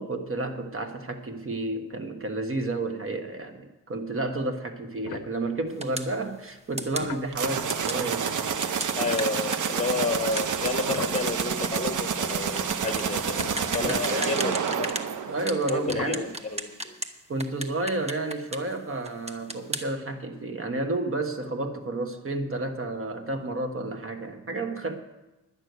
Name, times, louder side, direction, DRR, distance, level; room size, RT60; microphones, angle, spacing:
voice 1, 0.0-8.4 13.8-15.0 15.3-16.3 17.3-25.0, right 2 dB, 40° right, 6 dB, 1.5 m, -31 dB
sound 1, 5.0-6.0 6.7-11.9 12.2-12.3 12.9-13.0 13.4-14.4 15.8-16.3, left 10 dB, 65° left, 0.6 m, -43 dB
sound 2, 5.8-6.1 6.8-7.1 7.7-8.0 8.6-15.1 15.5-17.1 17.4-18.8 19.0-19.8, right 1 dB, 20° right, 1.0 m, -35 dB
sound 3, 7.3-16.0, right 7 dB, 65° right, 0.8 m, -29 dB
voice 2, 9.0-13.4 13.7-14.9 15.7-17.0, left 3 dB, 20° left, 5 dB, 1.5 m, -31 dB
11.0 x 6.6 x 9.4 m, 1.0 s
cardioid pair, 90°, 33 cm